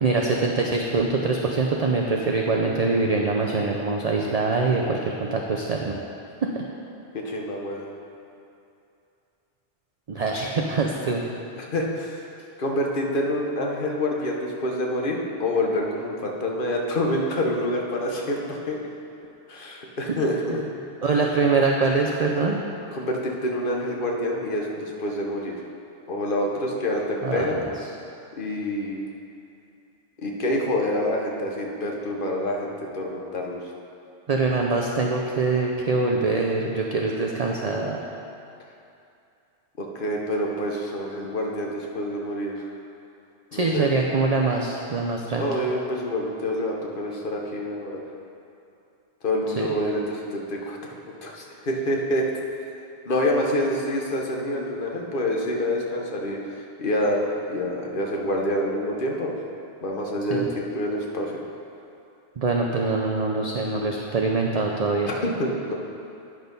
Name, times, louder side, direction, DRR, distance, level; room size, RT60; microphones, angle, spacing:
voice 1, 0.0-6.0 6.4-6.6 10.1-11.2 20.5-20.6 21.0-22.6 27.2-27.6 34.3-38.0 43.5-45.5 49.6-49.7 60.3-60.5 62.4-65.1, right 3 dB, 40° right, 0 dB, 0.6 m, -24 dB
voice 2, 7.1-7.9 11.6-12.2 12.6-18.9 19.5-20.6 22.9-25.6 26.1-27.6 28.4-29.0 30.2-33.6 39.8-42.7 43.5-43.9 45.4-48.0 49.2-51.0 51.2-52.3 53.0-59.3 59.8-61.4 65.0-65.7, left 1 dB, 50° left, -1 dB, 1.2 m, -27 dB
9.9 x 6.2 x 5.3 m, 2.7 s
omnidirectional pair, 1.2 m